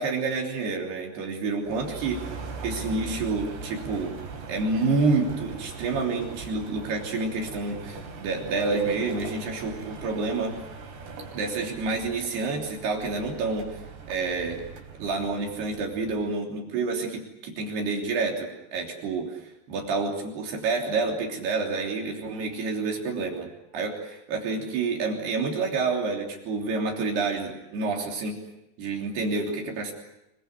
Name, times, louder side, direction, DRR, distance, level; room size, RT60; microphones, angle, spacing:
voice 1, 0.0-2.2 2.6-4.1 4.5-10.6 11.3-13.8 14.1-14.7 15.0-28.4 28.8-29.9, right 3 dB, 70° right, 1 dB, 5.3 m, -28 dB
sound 1, 1.6-16.2, right 4 dB, 90° right, 6.3 m, -40 dB
26.5 x 23.5 x 8.1 m, 0.91 s
omnidirectional pair, 4.8 m